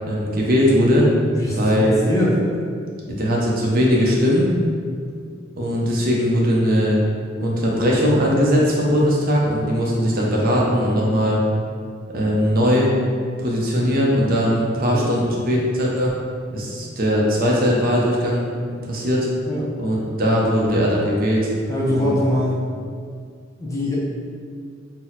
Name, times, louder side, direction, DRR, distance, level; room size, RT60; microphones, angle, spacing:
voice 1, 0.1-1.1 1.5-2.0 3.1-4.4 5.6-7.0 7.4-11.4 12.1-12.9 13.4-16.1 16.5-18.4 18.8-19.3 19.8-21.5 21.9-22.1, equal, 50° right, -3 dB, 0.5 m, -19 dB
voice 2, 1.3-2.4 14.9-15.1 19.5-19.6 21.7-22.6 23.6-24.0, left 1 dB, 15° left, -6 dB, 0.5 m, -22 dB
2.7 x 2.0 x 3.9 m, 2.1 s
head